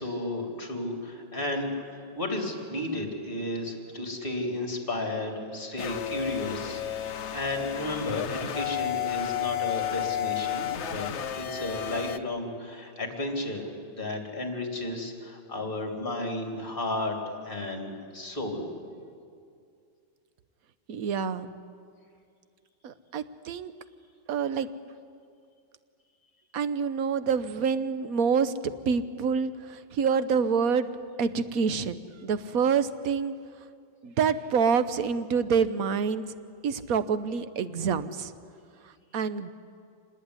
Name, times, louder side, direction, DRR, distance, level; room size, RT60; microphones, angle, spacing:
voice 1, 0.0-1.7 2.1-11.1 11.3-18.7, left 2 dB, 25° left, 3 dB, 3.4 m, -33 dB
sound 1, 5.8-12.2, left 11 dB, 55° left, 0.8 m, -32 dB
voice 2, 20.9-21.5 22.8-23.7 24.3-24.7 26.5-28.5 28.9-29.5 29.9-30.9 31.2-33.3 34.0-36.2 36.6-38.3 39.1-39.5, right 6 dB, 55° right, 13 dB, 1.3 m, -27 dB
26.0 x 20.0 x 9.8 m, 2.4 s
omnidirectional pair, 2.0 m